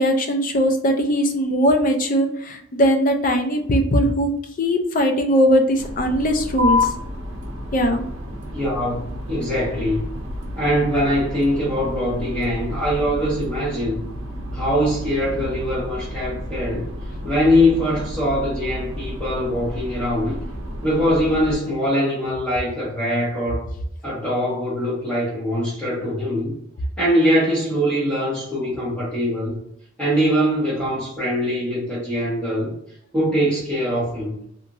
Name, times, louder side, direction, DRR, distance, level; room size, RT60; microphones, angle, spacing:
voice 1, 0.0-4.3 4.6-6.9 7.7-8.0, equal, 40° left, 5 dB, 0.4 m, -19 dB
sound 1, 5.8-21.5, equal, 85° right, 0.6 m, -32 dB
sound 2, 6.6-13.6, left 4 dB, 40° right, 0.6 m, -31 dB
voice 2, 8.5-9.0 9.3-10.0 10.6-14.1 14.5-16.9 17.2-20.4 20.8-23.6 24.0-26.5 27.0-29.6 30.0-32.7 33.1-34.4, equal, 5° left, -9 dB, 1.0 m, -22 dB
2.9 x 2.5 x 2.5 m, 0.71 s
head